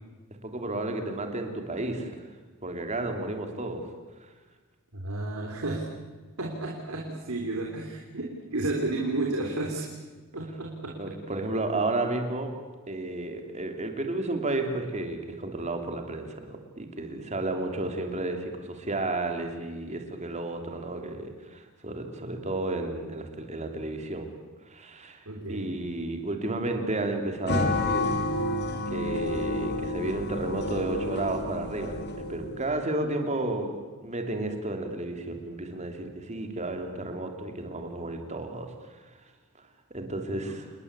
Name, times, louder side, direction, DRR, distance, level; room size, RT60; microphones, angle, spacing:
voice 1, 0.4-2.1 2.6-3.8 11.0-12.5 12.9-24.3 24.7-28.1 28.9-38.7 39.9-40.7, right 2 dB, 30° right, 4 dB, 3.5 m, -32 dB
voice 2, 4.9-5.9 6.4-9.8 10.3-11.2 25.3-25.8 40.4-40.6, right 2 dB, 80° right, 0 dB, 3.7 m, -32 dB
sound 1, 27.5-32.6, left 2 dB, 50° left, 2.9 m, -30 dB
29.5 x 20.5 x 8.4 m, 1.4 s
head